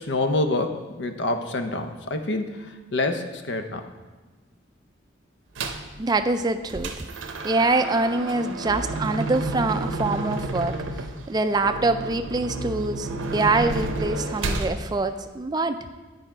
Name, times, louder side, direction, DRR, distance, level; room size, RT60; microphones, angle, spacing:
voice 1, 0.0-3.8, left 2 dB, 65° left, 7 dB, 0.7 m, -27 dB
sound 1, 5.6-5.9 6.4-14.7, right 2 dB, 80° right, 0.7 m, -30 dB
voice 2, 6.0-6.9 7.4-10.8 11.3-15.8, right 3 dB, 20° right, 9 dB, 0.4 m, -24 dB
9.4 x 4.9 x 4.5 m, 1.2 s
head